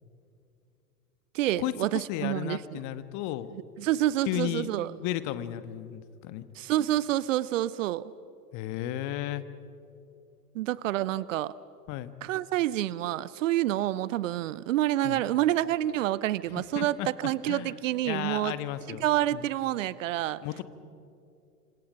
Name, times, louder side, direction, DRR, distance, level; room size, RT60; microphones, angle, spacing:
voice 1, 1.3-2.8 3.8-4.9 6.5-8.1 10.5-11.5 12.2-18.5 18.9-20.4, right 14 dB, 55° right, 20 dB, 0.8 m, -28 dB
voice 2, 2.1-3.5 4.2-6.5 8.5-9.4 11.9-12.1 15.0-15.2 16.6-17.7 18.0-19.1 19.3-19.5 20.4-20.6, left 13 dB, 40° left, 13 dB, 1.3 m, -34 dB
27.5 x 26.0 x 5.3 m, 2.6 s
figure-of-eight pair, 90°, 48 cm